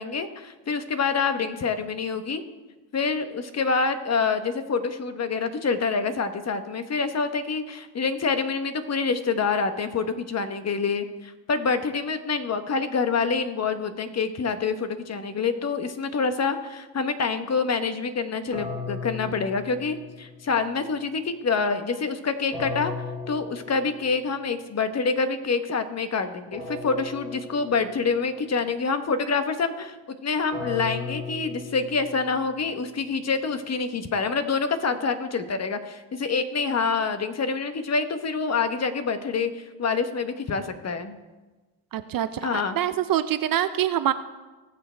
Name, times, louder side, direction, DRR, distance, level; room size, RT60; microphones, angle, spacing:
voice 1, 0.0-2.4 2.9-22.9 23.3-41.2 42.4-42.7, left 4 dB, 30° left, 10 dB, 1.0 m, -26 dB
sound 1, 18.5-20.6 22.5-24.4 26.5-28.4 30.5-32.7, left 3 dB, 5° left, 3.8 m, -36 dB
voice 2, 41.9-44.1, right 11 dB, 45° right, 12 dB, 0.6 m, -25 dB
19.5 x 6.8 x 3.3 m, 1.2 s
supercardioid pair, 90°, 49 cm